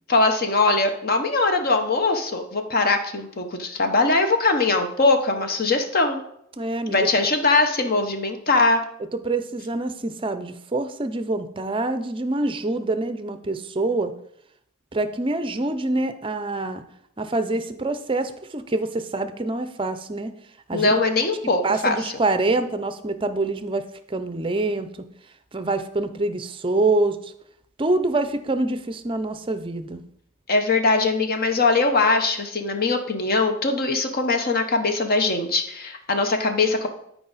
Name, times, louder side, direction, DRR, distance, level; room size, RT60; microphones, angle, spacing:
voice 1, 0.1-6.2 6.9-8.8 20.7-22.0 30.5-36.9, left 3 dB, 45° left, 6 dB, 0.9 m, -21 dB
voice 2, 6.6-7.1 9.1-14.1 14.9-16.8 17.2-20.3 20.7-20.9 21.6-24.9 25.5-27.3 27.8-30.0, right 2 dB, 25° right, 10 dB, 0.5 m, -25 dB
12.5 x 4.8 x 4.1 m, 0.73 s
head